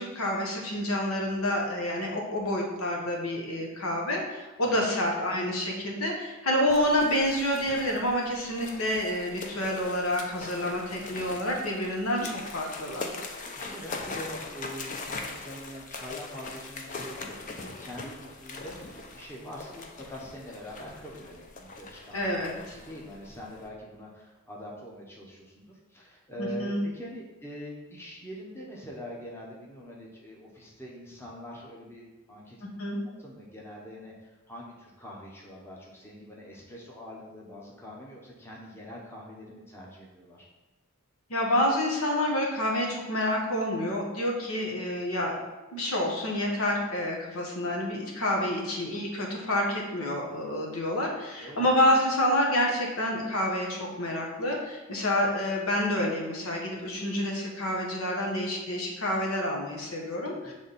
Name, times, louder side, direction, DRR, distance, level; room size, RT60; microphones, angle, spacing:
voice 1, 0.0-13.1 22.1-22.5 26.4-26.8 32.6-33.0 41.3-45.4 45.7-60.5, left 1 dB, 80° left, 0 dB, 1.2 m, -28 dB
sound 1, 6.7-23.7, left 3 dB, 35° left, 0.6 m, -41 dB
voice 2, 13.6-32.6 33.2-40.5 51.4-51.6 60.4-60.5, equal, 10° left, -3 dB, 0.9 m, -44 dB
7.3 x 3.4 x 4.1 m, 1.1 s
head